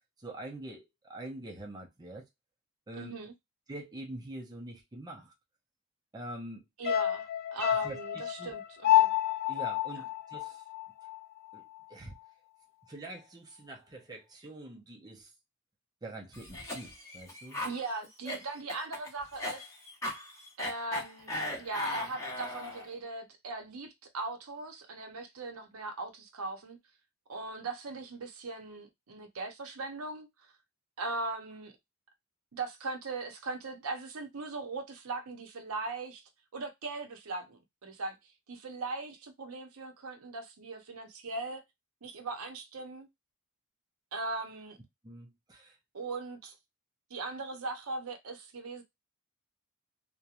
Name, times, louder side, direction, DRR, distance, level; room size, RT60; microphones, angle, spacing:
voice 1, 0.2-2.2 2.9-3.2 3.7-5.3 6.1-6.6 7.8-8.5 9.5-10.6 11.5-11.6 11.9-12.1 12.9-15.3 16.0-17.6 45.0-45.8, right 1 dB, 20° right, 0.5 m, -44 dB
voice 2, 3.0-3.3 6.8-9.1 17.6-19.7 20.6-26.8 27.3-30.3 31.0-31.7 32.5-36.2 36.5-38.2 38.5-41.6 42.0-43.1 44.1-44.8 45.9-46.5 47.1-48.8, right 3 dB, 70° right, 0.7 m, -39 dB
sound 1, 6.8-11.2 11.5-11.6, left 13 dB, 45° left, 0.3 m, -29 dB
Cough, 16.3-22.9, left 1 dB, 15° left, 0.9 m, -38 dB
2.9 x 2.1 x 2.3 m
head